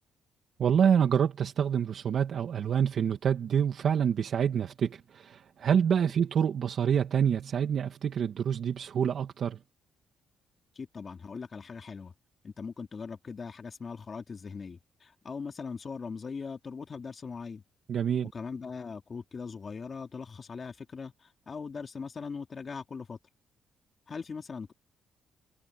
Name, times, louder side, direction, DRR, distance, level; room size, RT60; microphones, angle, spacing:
voice 1, 0.6-9.6 17.9-18.3, right 8 dB, 60° right, 2.2 m, -27 dB
voice 2, 10.7-12.1 12.4-17.6 18.3-23.2 24.1-24.7, left 5 dB, 40° left, 3.3 m, -40 dB
cardioid pair, 90°, 0 cm